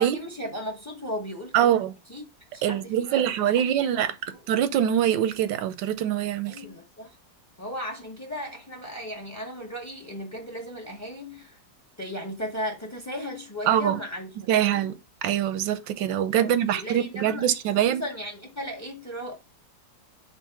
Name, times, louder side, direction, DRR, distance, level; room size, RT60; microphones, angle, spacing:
voice 1, 0.0-1.8 2.1-2.2 2.5-3.3 3.8-4.4 6.5-7.2 7.6-11.6 12.0-14.9 16.4-19.4, equal, 15° left, 0.6 m, -36 dB
voice 2, 1.5-1.9 2.6-4.1 4.5-6.6 13.7-14.0 14.5-18.0, right 10 dB, 90° right, 1.4 m, -24 dB
4.6 x 4.0 x 5.7 m
omnidirectional pair, 2.0 m